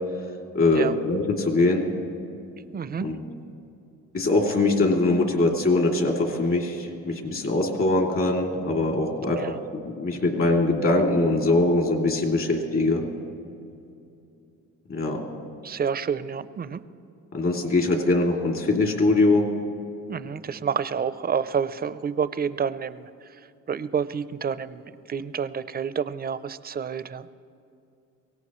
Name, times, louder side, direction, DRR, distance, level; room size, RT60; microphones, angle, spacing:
voice 1, 0.5-1.9 3.0-3.3 4.1-9.4 10.0-13.0 14.9-15.2 17.3-19.5, left 2 dB, 45° left, 1 dB, 2.7 m, -22 dB
voice 2, 2.6-3.1 9.3-9.6 15.6-16.8 20.1-23.0 23.7-27.3, right 7 dB, 30° right, 14 dB, 0.5 m, -29 dB
23.5 x 17.5 x 3.1 m, 2.7 s
cardioid pair, 90°, 30 cm